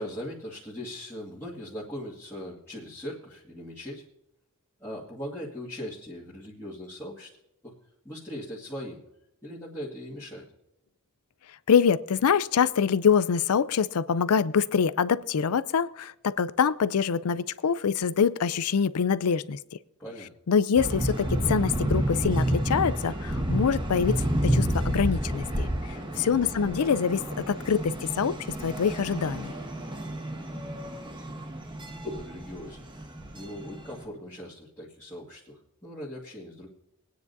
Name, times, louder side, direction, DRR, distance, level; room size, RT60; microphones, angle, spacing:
voice 1, 0.0-4.0 4.8-7.3 7.6-7.7 8.0-9.0 9.4-10.5 20.0-20.3 25.9-26.3 32.0-32.9 33.3-36.7, equal, 15° left, -10 dB, 2.0 m, -39 dB
voice 2, 11.7-19.6 20.5-25.7 26.2-28.3 28.6-29.5, left 6 dB, 85° left, 17 dB, 0.5 m, -25 dB
sound 1, 20.7-34.0, right 1 dB, 20° right, 1.6 m, -30 dB
22.5 x 9.6 x 2.7 m, 0.84 s
head